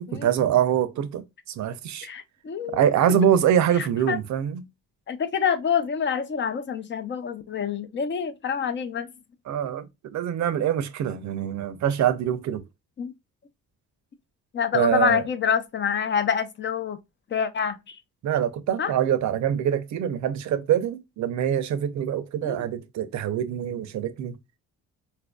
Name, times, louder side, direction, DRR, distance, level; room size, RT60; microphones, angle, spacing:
voice 1, 0.0-2.1 2.7-4.7 9.5-12.6 14.7-15.2 18.2-24.4, right 9 dB, 65° right, 0.6 m, -24 dB
voice 2, 2.0-2.8 3.8-4.2 5.1-9.1 13.0-13.1 14.5-17.0 17.3-18.0 18.8-18.9 22.4-22.7, left 7 dB, 40° left, 0.6 m, -27 dB
4.3 x 2.5 x 2.2 m
cardioid pair, 90°, 30 cm